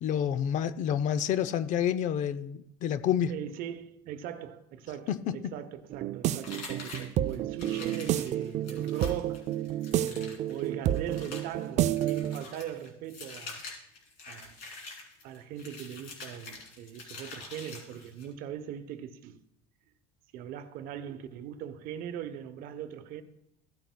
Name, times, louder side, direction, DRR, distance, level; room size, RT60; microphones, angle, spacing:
voice 1, 0.0-3.3 5.1-5.4, left 9 dB, 45° left, 0.5 m, -28 dB
voice 2, 3.3-9.5 10.0-13.6 14.3-14.6 15.2-19.4 20.3-23.2, right 10 dB, 55° right, 0.8 m, -40 dB
sound 1, 5.9-12.4, right 12 dB, 40° right, 0.4 m, -30 dB
sound 2, 6.4-18.3, left 3 dB, 70° left, 3.0 m, -46 dB
15.5 x 9.1 x 2.2 m
supercardioid pair, 115°, 17 cm